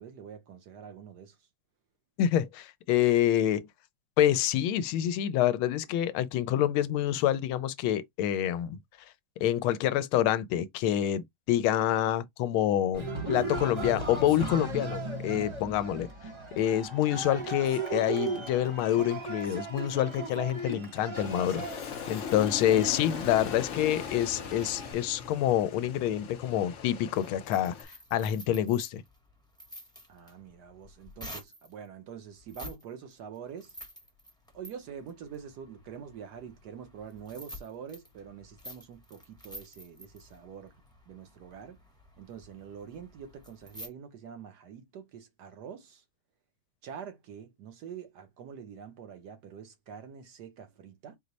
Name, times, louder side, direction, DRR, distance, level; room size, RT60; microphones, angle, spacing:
voice 1, 0.0-1.4 30.1-33.7 34.5-40.7 41.1-41.8 42.2-46.0 46.8-51.2, right 7 dB, 65° right, 1.2 m, -45 dB
voice 2, 2.2-3.7 4.2-8.8 9.4-16.1 16.6-21.7 22.1-29.0, left 11 dB, 90° left, 1.4 m, -27 dB
Cheering, 12.9-24.9, right 2 dB, 35° right, 0.5 m, -37 dB
Aircraft, 21.1-27.8, left 7 dB, 65° left, 0.7 m, -39 dB
sound 1, 27.2-31.7 32.4-32.8 33.1-43.9, equal, 5° left, 0.7 m, -49 dB
4.7 x 2.0 x 3.9 m
omnidirectional pair, 2.2 m